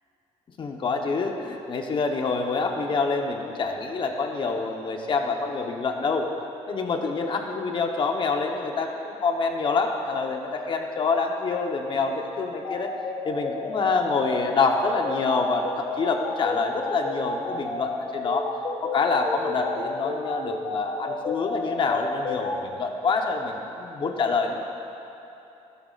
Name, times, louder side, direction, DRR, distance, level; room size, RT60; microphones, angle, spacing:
voice 1, 0.6-6.3 6.7-12.9 13.2-18.5 18.8-24.7, left 4 dB, 45° left, 3 dB, 1.0 m, -26 dB
sound 1, 12.6-22.5, left 3 dB, 70° left, 2.5 m, -31 dB
13.0 x 12.5 x 2.5 m, 3.0 s
cardioid pair, 115°, 12 cm